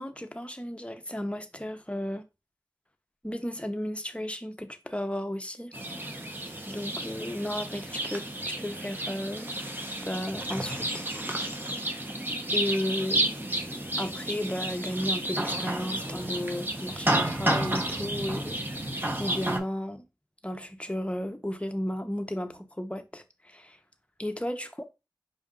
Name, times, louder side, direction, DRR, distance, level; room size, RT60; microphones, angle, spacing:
voice 1, 0.0-2.2 3.2-5.7 6.7-9.5 10.1-11.0 12.5-13.3 14.0-18.6 19.2-20.0 20.4-23.8 24.2-24.8, left 1 dB, 15° left, 0.7 m, -34 dB
sound 1, 5.7-19.6, right 1 dB, 25° right, 0.8 m, -31 dB
5.5 x 2.5 x 3.7 m
wide cardioid pair, 45°, 8 cm